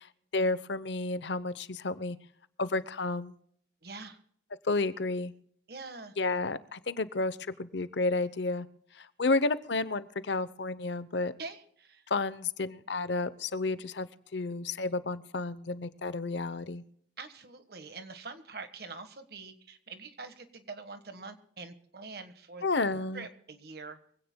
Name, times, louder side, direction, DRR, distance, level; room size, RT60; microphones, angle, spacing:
voice 1, 0.3-2.2 2.6-3.3 4.7-5.3 6.2-8.7 9.2-11.3 12.1-16.8 22.6-23.3, left 3 dB, 70° left, 15 dB, 0.8 m, -31 dB
voice 2, 3.8-4.2 5.7-6.1 11.4-12.1 17.2-24.0, right 4 dB, 55° right, 9 dB, 1.5 m, -45 dB
24.0 x 16.5 x 2.2 m, 0.65 s
head